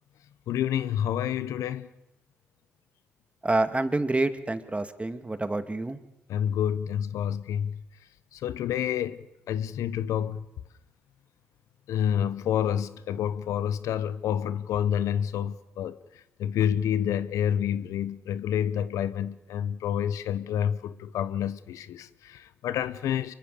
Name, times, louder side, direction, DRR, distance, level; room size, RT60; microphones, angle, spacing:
voice 1, 0.5-1.9 6.3-7.7 8.3-9.2 9.5-10.4 11.9-16.0 16.4-23.3, left 9 dB, 75° left, 0.9 m, -28 dB
voice 2, 3.4-6.0, right 2 dB, 25° right, 2.2 m, -27 dB
25.0 x 23.0 x 6.7 m
hypercardioid pair, 40°, 5 cm